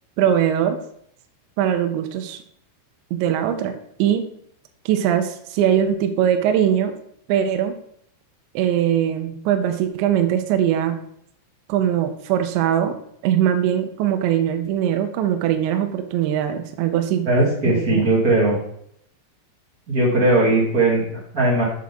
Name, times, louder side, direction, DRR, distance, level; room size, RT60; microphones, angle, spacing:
voice 1, 0.2-0.8 1.6-2.4 3.1-3.7 4.0-4.2 4.9-7.0 7.3-7.7 8.5-11.0 11.7-12.9 13.2-17.3 17.6-18.1, right 10 dB, 80° right, 6 dB, 2.8 m, -21 dB
voice 2, 17.3-18.6 19.9-21.6, right 2 dB, 25° right, -5 dB, 2.0 m, -18 dB
7.7 x 7.5 x 3.7 m, 0.67 s
omnidirectional pair, 5.6 m